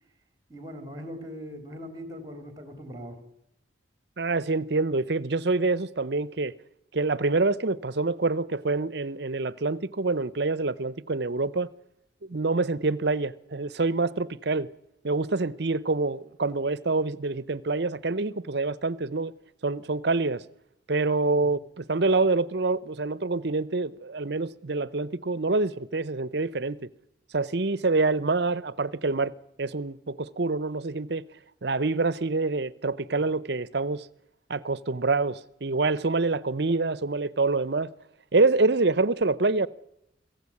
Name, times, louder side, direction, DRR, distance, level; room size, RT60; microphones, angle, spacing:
voice 1, 0.5-3.2, equal, 20° right, 3.2 m, -40 dB
voice 2, 4.2-6.5 6.9-11.7 12.2-14.7 15.0-19.3 19.6-20.4 20.9-26.9 27.3-29.3 29.6-31.2 31.6-34.1 34.5-37.9 38.3-39.7, right 3 dB, 60° right, 0.8 m, -26 dB
25.5 x 15.5 x 8.6 m
head